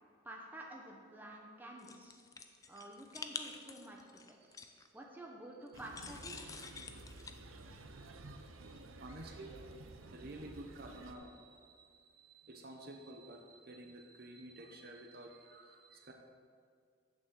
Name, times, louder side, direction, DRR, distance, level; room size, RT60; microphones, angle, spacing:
voice 1, 0.2-2.2 2.7-4.0 4.3-4.4 4.9-6.6, right 1 dB, 10° right, -1 dB, 1.0 m, -50 dB
sound 1, 1.8-4.9 5.7-7.3, left 5 dB, 15° left, 0.3 m, -48 dB
sound 2, 5.7-11.1, right 2 dB, 80° right, 0.7 m, -52 dB
voice 2, 7.6-9.6 10.1-16.1, right 1 dB, 50° right, 2 dB, 0.8 m, -52 dB
8.4 x 6.4 x 7.4 m, 2.1 s
head